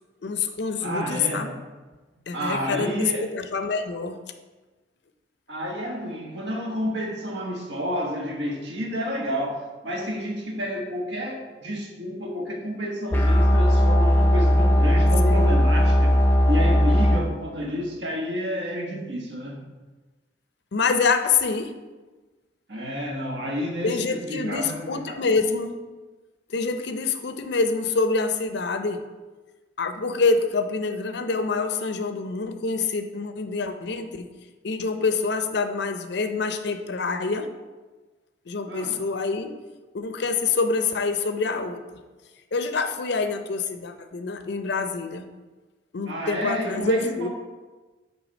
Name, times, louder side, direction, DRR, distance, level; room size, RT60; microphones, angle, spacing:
voice 1, 0.2-1.5 2.3-4.2 15.2-15.5 20.7-21.7 23.8-25.8 26.5-29.0 29.8-34.2 34.6-37.5 38.5-39.5 39.9-41.8 42.5-45.3 45.9-47.3, left 4 dB, 60° left, 8 dB, 0.5 m, -26 dB
voice 2, 0.8-1.5 2.3-3.3 5.5-16.2 16.5-19.7 22.7-25.3 38.7-39.0 46.0-47.3, equal, 65° right, 1 dB, 1.2 m, -30 dB
sound 1, 13.1-17.2, equal, 10° left, 0.7 m, -18 dB
8.2 x 3.3 x 5.2 m, 1.3 s
head